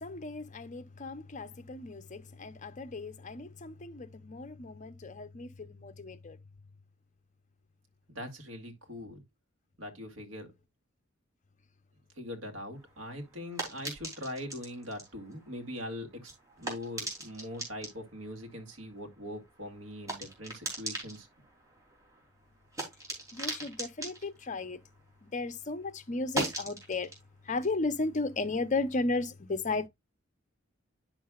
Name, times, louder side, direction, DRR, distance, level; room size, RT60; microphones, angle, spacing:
voice 1, 0.0-6.4 23.3-24.8 25.2-27.1 27.5-29.9, left 3 dB, 35° left, 0.7 m, -35 dB
voice 2, 8.1-9.2 9.8-10.5 12.2-16.3 16.6-21.3, left 1 dB, 70° right, 2.1 m, -42 dB
sound 1, 12.7-25.5 25.8-29.0, right 2 dB, 15° right, 3.1 m, -42 dB
10.0 x 6.1 x 2.4 m
head